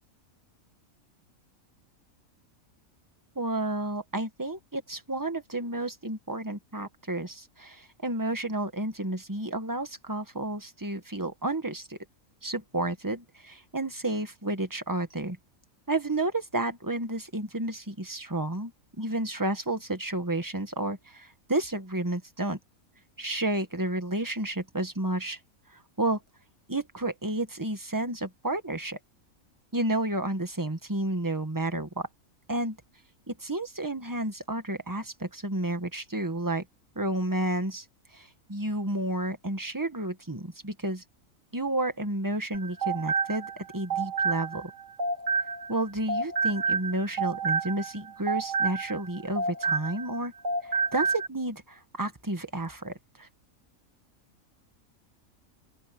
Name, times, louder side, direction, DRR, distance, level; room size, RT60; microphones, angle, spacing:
voice 1, 3.3-12.0 12.4-15.4 15.9-18.7 19.0-22.6 23.2-25.4 26.0-26.2 26.7-29.0 29.7-32.1 32.5-32.8 33.3-36.6 36.9-37.8 38.1-41.0 41.5-44.7 45.7-50.3 50.6-53.3, right 1 dB, 15° right, 1.7 m, -31 dB
sound 1, 42.5-45.8 46.1-50.2 50.4-51.3, right 4 dB, 55° right, 3.9 m, -29 dB
open air
omnidirectional pair, 1.5 m